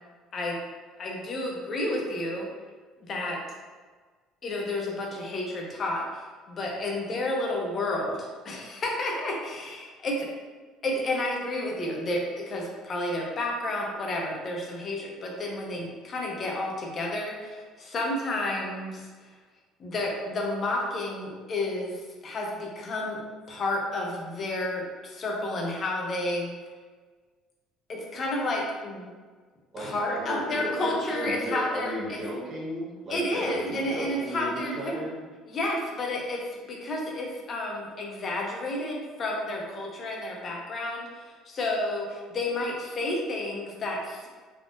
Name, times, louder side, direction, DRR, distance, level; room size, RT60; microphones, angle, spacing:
voice 1, 1.0-2.5 3.0-3.4 4.4-10.3 10.8-19.1 19.8-23.2 23.5-26.5 27.9-29.1 29.8-32.0 33.1-35.0 35.5-36.4 36.7-44.3, left 1 dB, 40° left, -1 dB, 0.7 m, -31 dB
voice 2, 29.7-35.2, right 1 dB, 30° right, -10 dB, 1.5 m, -35 dB
3.6 x 2.4 x 2.5 m, 1.4 s
cardioid pair, 110°, 0 cm